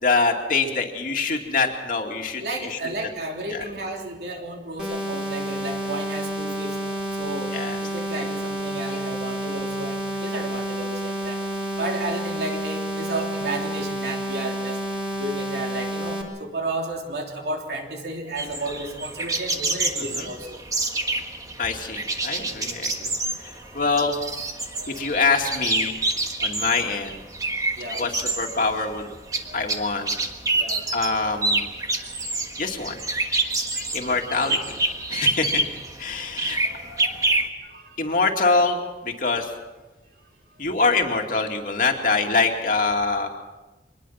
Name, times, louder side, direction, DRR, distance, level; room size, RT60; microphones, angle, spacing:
voice 1, 0.0-2.8 3.5-3.6 7.5-7.8 8.9-9.0 20.1-20.3 21.6-23.1 23.4-24.2 25.0-26.0 26.4-27.2 28.0-29.1 29.5-30.1 30.9-31.7 32.6-33.0 33.2-34.6 35.1-35.6 36.0-36.6 38.0-38.8 39.0-39.5 40.6-43.3, left 4 dB, 50° left, 3 dB, 2.4 m, -24 dB
voice 2, 2.4-7.6 7.8-11.4 11.8-14.8 15.1-20.6 23.6-24.2 24.7-25.1 27.8-28.1 29.5-29.8 30.5-30.9 31.9-32.0 33.9-34.1 34.9-35.1 36.6-37.2 37.6-38.1, right 2 dB, 65° right, 1 dB, 3.3 m, -33 dB
sound 1, 4.8-16.2, right 1 dB, 5° right, 3.6 m, -29 dB
sound 2, 18.4-37.5, right 2 dB, 20° right, 1.5 m, -27 dB
24.0 x 20.5 x 5.8 m, 1.1 s
head